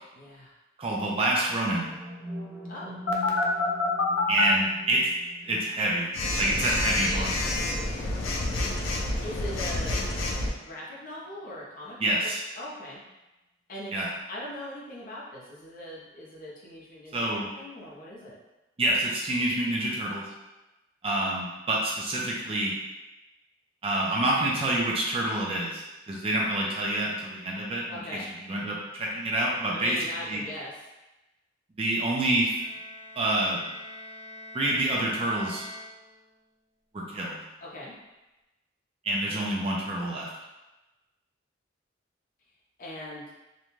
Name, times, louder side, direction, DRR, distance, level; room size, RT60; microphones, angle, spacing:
voice 1, 0.1-0.5 2.7-2.9 9.2-10.0 10.6-13.0 13.7-13.9 14.3-18.4 27.9-28.3 29.7-30.7 37.6-37.9 42.8-43.2, left 1 dB, 45° left, -5 dB, 0.7 m, -40 dB
voice 2, 0.8-1.9 4.3-5.0 5.4-6.1 6.4-7.3 12.0-12.4 13.9-14.1 17.1-17.5 18.8-20.2 21.0-22.7 23.8-30.4 31.8-32.6 33.2-33.6 34.5-35.7 36.9-37.4 39.0-40.3, right 1 dB, 30° right, -3 dB, 0.4 m, -27 dB
sound 1, 1.4-9.4, equal, 5° right, 0.8 m, -44 dB
Telephone, 3.1-4.4 6.1-10.5, left 2 dB, 85° left, 0.5 m, -28 dB
Bowed string instrument, 32.5-36.5, left 1 dB, 85° right, 1.1 m, -45 dB
2.5 x 2.2 x 3.0 m, 1.0 s
head